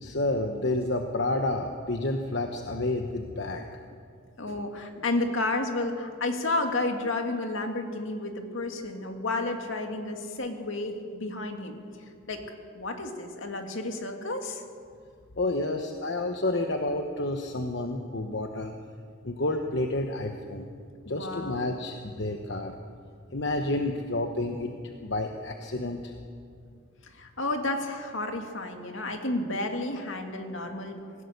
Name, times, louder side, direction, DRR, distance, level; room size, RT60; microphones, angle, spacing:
voice 1, 0.0-3.7 15.4-18.7 19.2-20.7 21.1-22.7 23.3-24.7 25.0-26.1, left 2 dB, 60° left, 4 dB, 1.1 m, -30 dB
voice 2, 4.4-11.8 12.3-12.4 12.7-14.6 21.1-21.8 27.1-31.0, left 2 dB, 75° left, 4 dB, 2.2 m, -31 dB
25.0 x 16.0 x 6.8 m, 2.2 s
head